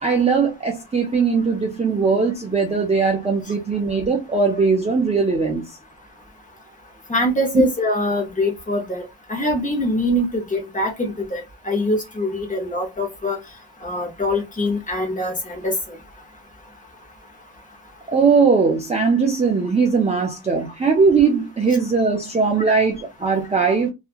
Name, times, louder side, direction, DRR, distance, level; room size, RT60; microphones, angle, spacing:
voice 1, 0.0-5.8 7.5-7.6 18.1-23.9, right 4 dB, 15° right, 0.3 m, -19 dB
voice 2, 7.1-9.0 9.3-13.4 13.8-15.7 22.6-22.7, left 1 dB, 15° left, 0.7 m, -23 dB
2.8 x 2.4 x 2.4 m
wide cardioid pair, 180°, 47 cm